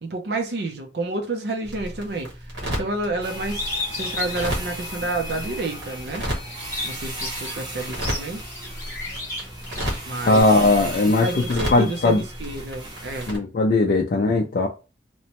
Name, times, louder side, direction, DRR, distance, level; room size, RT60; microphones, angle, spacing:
voice 1, 0.0-6.3 6.8-8.4 10.1-13.3, right 2 dB, 65° right, 0.5 m, -30 dB
sound 1, 1.6-13.4, equal, 80° right, 1.3 m, -34 dB
sound 2, 3.2-13.3, equal, 25° right, 0.6 m, -37 dB
Bird, 3.5-5.5 5.9-10.4, left 2 dB, 15° left, 0.7 m, -33 dB
voice 2, 10.3-12.2 13.3-14.7, left 2 dB, 50° left, 0.3 m, -19 dB
2.9 x 2.1 x 2.8 m
head